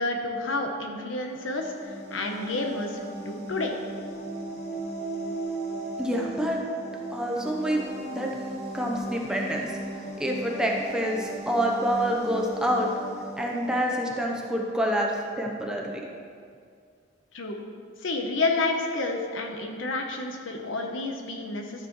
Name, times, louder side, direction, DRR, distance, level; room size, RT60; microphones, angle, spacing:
voice 1, 0.0-3.7 17.3-17.6 18.0-21.9, left 2 dB, 85° left, 3 dB, 1.0 m, -30 dB
sound 1, 1.2-14.8, right 2 dB, 35° left, 1.8 m, -37 dB
voice 2, 6.0-6.6 7.1-7.8 8.1-8.4 8.7-9.8 10.2-12.9 13.4-16.0, equal, 5° right, -1 dB, 0.8 m, -27 dB
13.0 x 6.8 x 3.2 m, 2.2 s
head